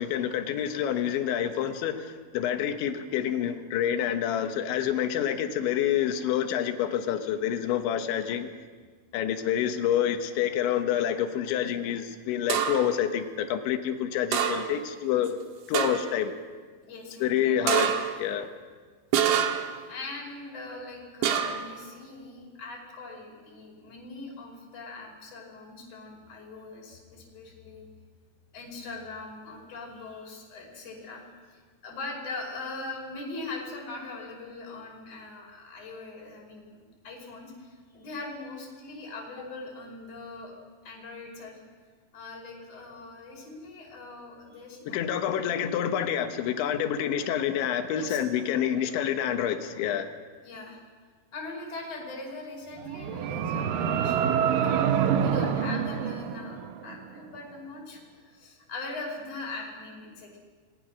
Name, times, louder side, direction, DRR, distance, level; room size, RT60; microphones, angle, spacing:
voice 1, 0.0-8.5 9.1-15.4 15.7-16.3 17.2-18.5 44.9-50.1, left 9 dB, 75° left, 7 dB, 3.5 m, -28 dB
sound 1, 12.5-13.0 14.3-14.9 15.2-15.3 15.7-16.2 17.7-18.2 19.1-19.8 21.2-21.7, right 8 dB, 70° right, 3.5 m, -26 dB
voice 2, 16.9-17.8 19.9-27.9 28.5-31.2 31.5-40.5 40.8-41.7 42.1-45.0 47.9-48.2 48.7-48.9 50.4-50.8 51.3-60.4, left 3 dB, 30° left, -1 dB, 5.8 m, -41 dB
sound 2, 52.7-57.0, right 8 dB, 85° right, 1.9 m, -26 dB
27.5 x 20.5 x 6.3 m, 1.5 s
omnidirectional pair, 5.6 m